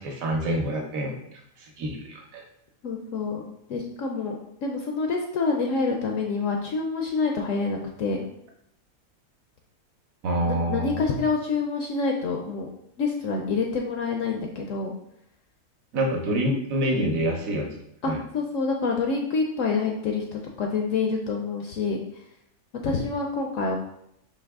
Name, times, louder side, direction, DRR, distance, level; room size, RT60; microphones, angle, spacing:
voice 1, 0.0-2.4 10.2-11.0 15.9-17.7 18.1-18.2, right 1 dB, 65° right, 1 dB, 1.1 m, -27 dB
voice 2, 2.8-3.4 3.7-8.2 10.5-12.7 13.0-14.9 18.0-22.0 22.8-23.8, left 4 dB, 70° left, 2 dB, 0.8 m, -27 dB
4.6 x 2.9 x 3.5 m, 0.75 s
omnidirectional pair, 1.7 m